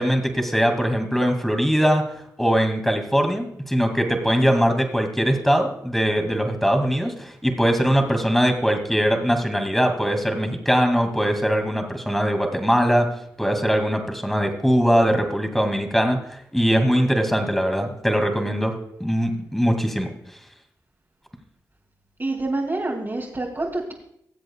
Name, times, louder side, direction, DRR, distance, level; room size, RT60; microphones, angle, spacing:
voice 1, 0.0-2.1 2.4-13.1 13.4-20.1, equal, 5° left, 5 dB, 2.4 m, -21 dB
voice 2, 22.2-23.9, right 2 dB, 35° right, -4 dB, 2.7 m, -27 dB
21.5 x 7.7 x 2.4 m, 0.74 s
supercardioid pair, 40°, 8 cm